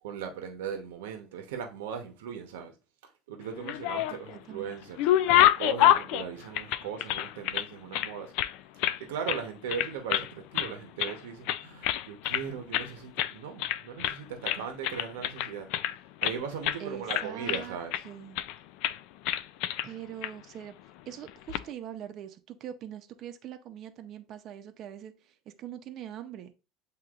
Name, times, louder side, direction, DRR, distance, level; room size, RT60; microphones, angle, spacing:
voice 1, 0.0-2.7 3.3-5.1 5.6-8.3 9.0-15.7 16.2-17.9, right 7 dB, 85° right, 0.8 m, -38 dB
sound 1, 3.5-4.4 4.7-7.7 7.9-9.0 9.3-9.4 9.7-10.3 10.5-11.2 11.5-12.5 12.7-12.9 13.2-13.3 13.6-14.2 14.5-16.4 16.6-16.8 17.1-18.0 18.4-18.6 18.8-19.0 19.3-19.9 20.2-20.3 21.3-21.6, left 12 dB, 70° left, 0.3 m, -27 dB
voice 2, 4.1-4.7 16.8-17.8 18.0-18.4 19.8-20.7 21.1-26.5, right 10 dB, 55° right, 0.6 m, -43 dB
7.6 x 2.8 x 2.4 m
supercardioid pair, 90°, 0 cm